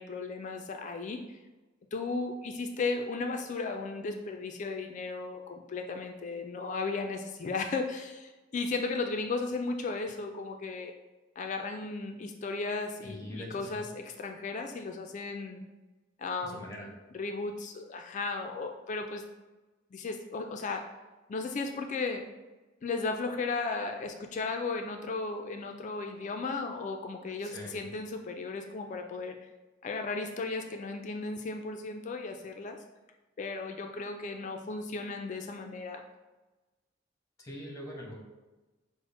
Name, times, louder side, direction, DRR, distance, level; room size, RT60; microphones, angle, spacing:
voice 1, 0.0-1.4 1.9-10.9 11.4-15.6 16.2-16.7 17.1-19.2 19.9-20.8 21.3-22.2 22.8-29.4 29.8-32.8 33.4-36.0, left 3 dB, 40° left, 4 dB, 0.3 m, -35 dB
voice 2, 13.0-13.9 16.4-16.9 27.4-27.9 37.4-38.2, equal, 20° left, -1 dB, 1.0 m, -43 dB
5.7 x 2.0 x 4.1 m, 1.1 s
head